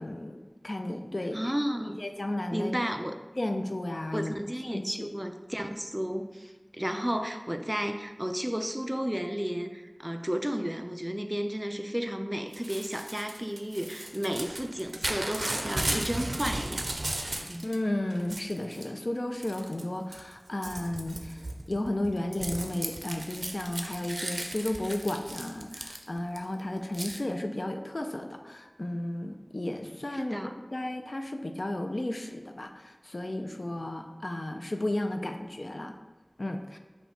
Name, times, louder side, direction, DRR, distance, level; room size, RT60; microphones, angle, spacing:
voice 1, 0.0-1.4 2.0-2.7 3.4-4.3 4.6-5.1 17.3-35.9 36.4-36.8, left 1 dB, 75° left, 5 dB, 0.3 m, -33 dB
voice 2, 1.3-2.0 2.5-3.1 4.1-16.9 17.5-17.7 30.1-30.5, equal, 15° right, 6 dB, 0.3 m, -33 dB
Crumpling crinkling / Tearing, 12.5-17.8 18.1-18.9 19.4-19.8 20.1-26.4 26.9-27.2, right 1 dB, 90° right, 0.4 m, -36 dB
5.5 x 2.2 x 4.1 m, 1.3 s
wide cardioid pair, 40°, 0 cm